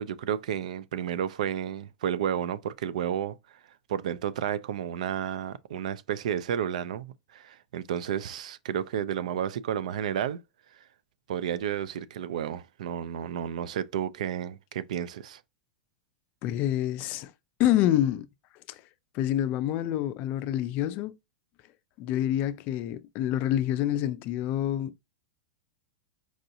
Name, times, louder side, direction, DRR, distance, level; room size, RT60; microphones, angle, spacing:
voice 1, 0.0-3.4 3.9-10.4 11.3-15.4, right 9 dB, 75° right, 0.4 m, -31 dB
voice 2, 16.4-17.3 17.6-18.3 18.7-18.8 19.1-21.1 22.0-24.9, left 12 dB, 45° left, 0.3 m, -27 dB
4.7 x 2.7 x 2.5 m
hypercardioid pair, 120°, 4 cm